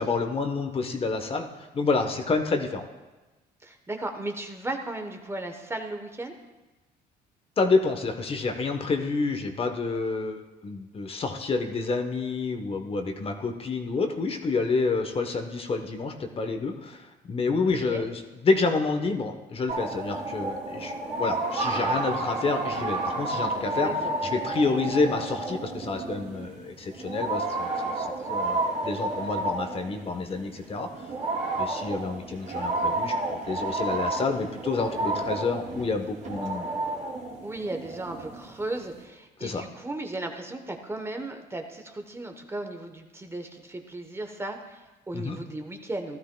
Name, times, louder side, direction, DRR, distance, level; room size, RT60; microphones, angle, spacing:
voice 1, 0.0-2.8 7.6-20.9 21.2-23.9 24.3-30.9 31.6-36.7 39.4-39.6 45.1-45.4, left 4 dB, 35° left, 5 dB, 1.0 m, -28 dB
voice 2, 3.6-6.4 17.6-18.1 23.8-24.2 37.4-46.2, right 2 dB, 15° right, 5 dB, 0.9 m, -36 dB
sound 1, 19.7-39.0, right 2 dB, 50° right, 2.6 m, -31 dB
15.5 x 12.5 x 2.2 m, 1.1 s
cardioid pair, 110°, 17 cm